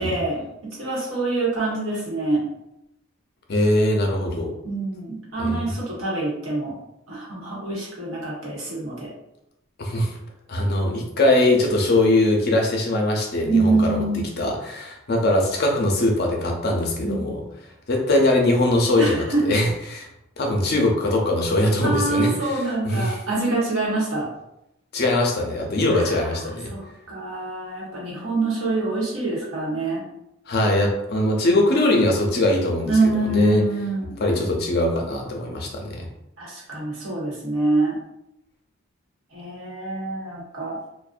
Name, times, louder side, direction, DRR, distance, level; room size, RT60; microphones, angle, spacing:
voice 1, 0.0-2.4 4.6-6.8 7.1-9.1 13.5-14.2 17.0-17.4 19.0-19.4 21.8-24.3 25.9-26.1 26.7-30.0 32.9-34.1 36.4-38.0 39.3-40.8, right 2 dB, 90° right, -5 dB, 1.0 m, -25 dB
voice 2, 3.5-4.5 5.4-5.6 9.8-10.1 10.5-17.4 17.9-20.1 20.4-23.2 24.9-26.7 30.5-33.6 34.2-36.1, left 1 dB, 50° left, 1 dB, 0.5 m, -21 dB
2.5 x 2.0 x 2.4 m, 0.85 s
head